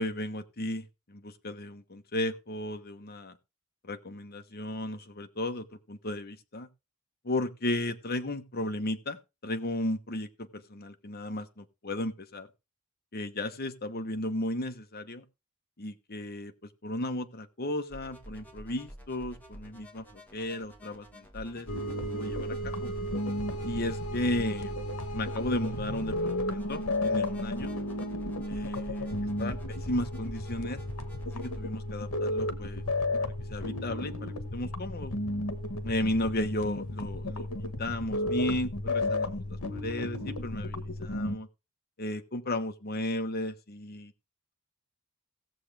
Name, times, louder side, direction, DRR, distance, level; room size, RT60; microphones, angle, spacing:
voice 1, 0.0-3.3 3.8-6.7 7.2-12.5 13.1-15.2 15.8-16.5 16.8-21.7 22.1-22.9 23.6-24.8 25.1-27.7 28.5-30.8 31.3-32.8 33.2-35.1 35.8-41.5 42.0-44.1, left 1 dB, 45° left, 1.1 m, -34 dB
sound 1, 17.9-31.6, equal, 10° left, 1.9 m, -48 dB
sound 2, 21.7-41.4, left 1 dB, 85° left, 1.3 m, -33 dB
17.0 x 7.3 x 3.3 m
head